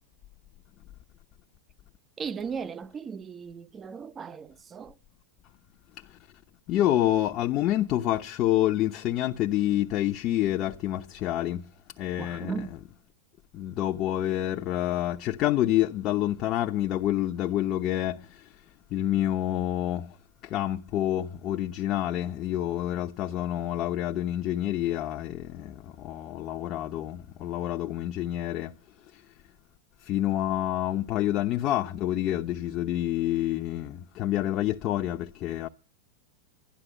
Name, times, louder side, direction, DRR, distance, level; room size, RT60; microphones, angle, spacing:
voice 1, 2.2-5.0 12.2-12.7, right 6 dB, 25° right, 0.8 m, -37 dB
voice 2, 6.7-11.6 12.0-12.5 13.5-18.5 18.9-20.2 20.4-28.7 29.1-29.2 30.0-35.7, left 13 dB, 45° left, 0.9 m, -28 dB
11.5 x 11.5 x 8.1 m
hypercardioid pair, 110°, 0 cm